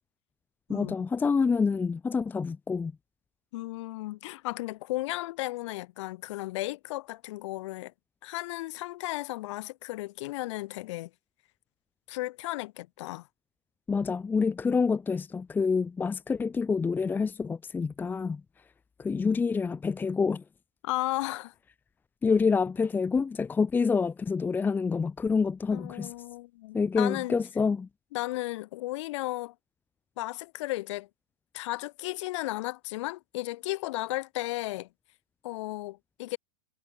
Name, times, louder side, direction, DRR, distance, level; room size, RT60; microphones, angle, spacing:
voice 1, 0.7-2.9 13.9-18.4 19.0-20.4 22.2-26.1 26.7-27.9, left 5 dB, 10° left, 1.0 m, -27 dB
voice 2, 3.5-7.9 8.2-11.1 12.1-13.3 20.8-21.5 25.7-27.4 28.1-29.5 30.2-31.1 31.5-34.9 35.4-36.4, left 18 dB, 60° left, 7.7 m, -34 dB
supercardioid pair, 145°, 17 cm